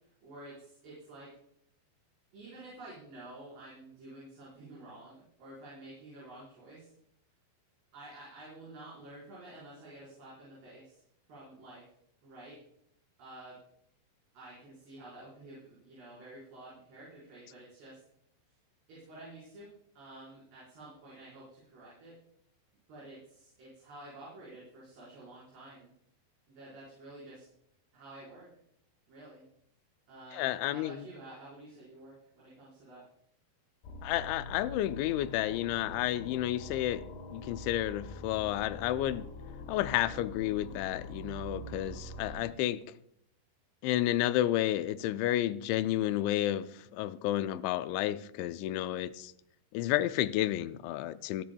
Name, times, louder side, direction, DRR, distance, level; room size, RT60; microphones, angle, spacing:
voice 1, 0.2-1.3 2.3-6.9 7.9-11.0 11.3-11.8 12.2-12.6 13.2-13.6 14.3-18.0 18.9-19.7 19.9-22.2 22.9-25.9 26.5-27.5 27.9-28.5 29.1-29.4 30.1-33.0, right 2 dB, 65° right, 6.7 m, -50 dB
voice 2, 30.3-31.0 34.0-37.0 37.3-39.3 39.7-42.8 43.8-49.3 49.7-51.4, left 13 dB, 85° left, 3.0 m, -31 dB
sound 1, 33.8-42.4, left 1 dB, 70° left, 3.3 m, -44 dB
28.0 x 10.5 x 2.3 m
omnidirectional pair, 5.2 m